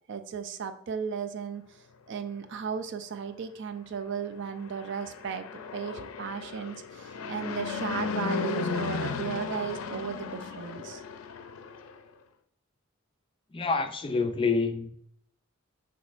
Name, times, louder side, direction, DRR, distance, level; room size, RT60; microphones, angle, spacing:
voice 1, 0.1-1.8 2.1-11.0, right 7 dB, 60° right, 0.4 m, -35 dB
Fixed-wing aircraft airplane, 4.6-12.0, left 5 dB, 90° left, 0.4 m, -35 dB
voice 2, 13.5-14.9, left 4 dB, 25° left, 0.4 m, -27 dB
6.0 x 3.1 x 2.5 m
head